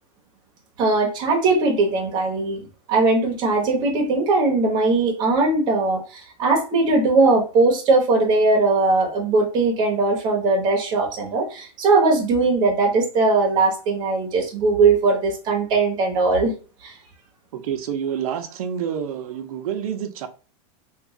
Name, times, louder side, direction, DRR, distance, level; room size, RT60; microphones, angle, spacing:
voice 1, 0.8-16.5 16.8-16.9, right 3 dB, 25° right, 0.8 m, -20 dB
voice 2, 17.5-20.3, right 8 dB, 85° right, 0.6 m, -28 dB
3.0 x 2.3 x 3.6 m
supercardioid pair, 170°, 18 cm